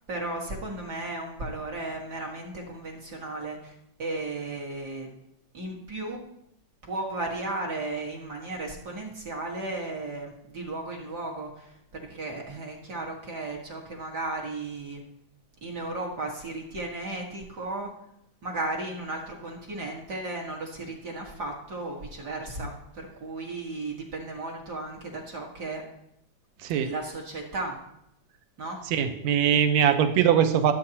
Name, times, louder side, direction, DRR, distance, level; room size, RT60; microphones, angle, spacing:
voice 1, 0.1-3.7 4.0-5.1 5.5-6.2 6.9-11.7 12.1-15.0 15.6-17.9 18.4-25.8 26.8-27.8 28.6-28.8, right 2 dB, 40° right, 0 dB, 1.6 m, -35 dB
voice 2, 28.9-30.7, right 9 dB, 70° right, 8 dB, 2.0 m, -22 dB
22.5 x 8.4 x 2.9 m, 0.79 s
omnidirectional pair, 3.8 m